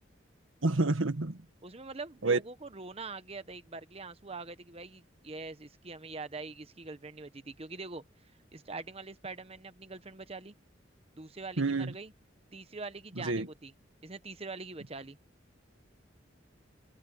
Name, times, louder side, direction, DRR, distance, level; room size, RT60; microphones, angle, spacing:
voice 1, 0.6-1.4 2.2-2.4 11.6-11.9 13.2-13.5, right 3 dB, 90° right, 1.5 m, -28 dB
voice 2, 1.6-8.0 8.5-10.5 11.2-12.1 12.5-13.7 14.0-15.2, right 3 dB, 30° right, 1.0 m, -43 dB
head